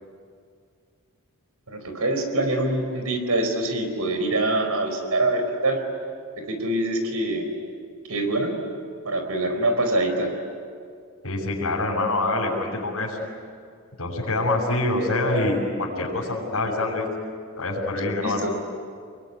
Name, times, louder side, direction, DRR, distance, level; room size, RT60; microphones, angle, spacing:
voice 1, 1.7-5.8 6.4-7.5 8.1-8.6 9.0-10.3 18.2-18.5, right 2 dB, 85° right, 6 dB, 4.5 m, -24 dB
voice 2, 11.2-13.2 14.0-17.1 17.6-18.4, left 2 dB, 70° left, -3 dB, 6.5 m, -25 dB
27.5 x 22.5 x 9.7 m, 2.2 s
head